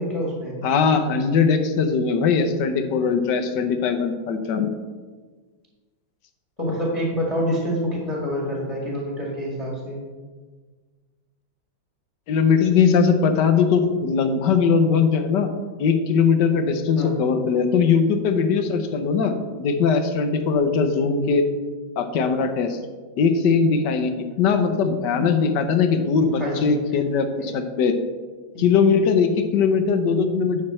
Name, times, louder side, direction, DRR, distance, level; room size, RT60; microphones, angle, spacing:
voice 1, 0.0-0.6 6.6-10.0 17.0-17.2 26.2-26.8 27.4-27.5 28.5-28.6, equal, 20° left, -3 dB, 1.5 m, -27 dB
voice 2, 0.6-4.7 12.3-15.5 15.8-21.4 22.0-22.8 23.2-24.1 24.4-28.0 28.6-30.6, left 5 dB, 65° left, 7 dB, 1.3 m, -20 dB
9.7 x 6.3 x 4.3 m, 1.4 s
omnidirectional pair, 2.1 m